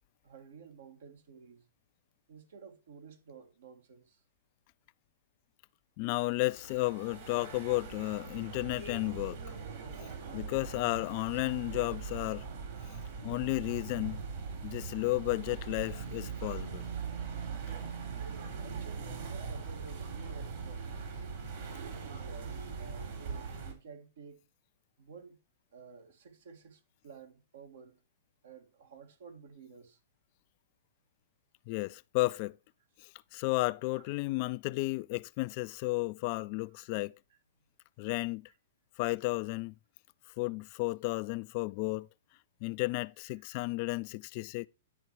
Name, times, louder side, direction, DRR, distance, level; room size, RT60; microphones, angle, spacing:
voice 1, 0.2-1.7 2.3-4.2 18.6-20.9 21.6-24.4 25.0-25.4 25.7-28.0 28.4-30.0, right 5 dB, 70° right, 1.9 m, -52 dB
voice 2, 6.0-9.4 10.3-12.4 13.2-14.2 14.6-16.8 17.7-17.8 31.7-32.6 33.0-37.2 38.0-38.5 39.0-39.7 40.4-42.1 42.6-44.7, left 23 dB, 45° left, 0.3 m, -33 dB
sound 1, 6.3-23.7, right 5 dB, 55° right, 3.6 m, -41 dB
11.0 x 4.3 x 4.6 m
hypercardioid pair, 125°, 0 cm